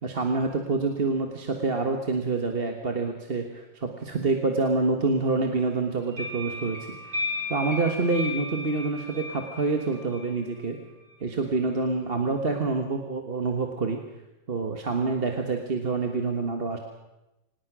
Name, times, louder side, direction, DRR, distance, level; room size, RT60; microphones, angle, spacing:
voice 1, 0.0-7.2 7.5-10.8 11.2-14.0 14.5-16.8, right 3 dB, 30° right, 4 dB, 1.6 m, -27 dB
sound 1, 6.1-10.6, left 2 dB, 55° right, 5.7 m, -35 dB
25.5 x 18.5 x 6.2 m, 0.95 s
omnidirectional pair, 2.1 m